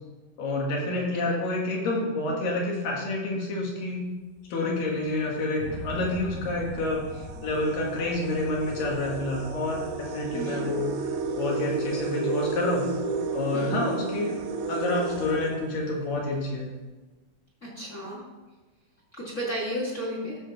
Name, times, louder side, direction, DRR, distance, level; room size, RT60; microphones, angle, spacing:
voice 1, 0.4-4.0 4.5-7.0 7.4-10.9 11.4-12.9 13.3-14.3 14.7-16.7, left 2 dB, 65° left, -2 dB, 3.5 m, -28 dB
sound 1, 4.9-5.2 6.0-6.1 6.5-16.3, right 4 dB, 85° right, 2.8 m, -33 dB
sound 2, 5.6-11.7, left 1 dB, 45° left, 1.8 m, -42 dB
voice 2, 10.3-10.7 13.5-13.8 17.6-18.2 19.2-20.4, equal, 25° left, -5 dB, 1.9 m, -33 dB
14.0 x 6.9 x 3.6 m, 1.2 s
omnidirectional pair, 4.4 m